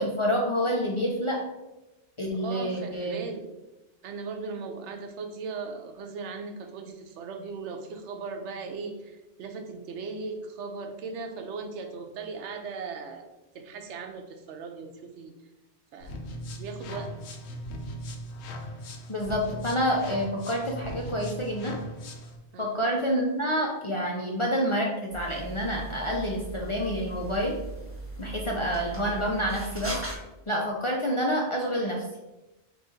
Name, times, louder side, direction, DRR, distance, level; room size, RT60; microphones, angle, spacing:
voice 1, 0.0-1.4 2.2-3.2 19.1-21.7 22.6-27.6 28.2-29.9 30.5-32.0, equal, 45° left, -2 dB, 0.4 m, -28 dB
voice 2, 2.4-3.5 4.0-15.3 15.9-17.4 22.5-22.8, right 4 dB, 85° right, 5 dB, 0.9 m, -38 dB
sound 1, 16.0-22.4, equal, 75° left, 0.9 m, -39 dB
sound 2, 25.1-30.2, right 2 dB, 15° right, 0.9 m, -38 dB
3.8 x 3.1 x 3.9 m, 1.0 s
omnidirectional pair, 1.2 m